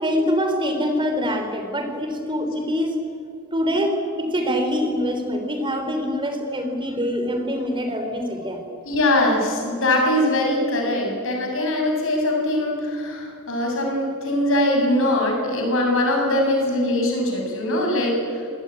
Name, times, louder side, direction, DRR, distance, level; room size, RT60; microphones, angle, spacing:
voice 1, 0.0-2.9 3.5-8.6, equal, 20° right, 6 dB, 3.3 m, -24 dB
voice 2, 8.9-18.2, left 1 dB, 60° left, 1 dB, 7.5 m, -22 dB
26.5 x 18.0 x 9.9 m, 2.2 s
head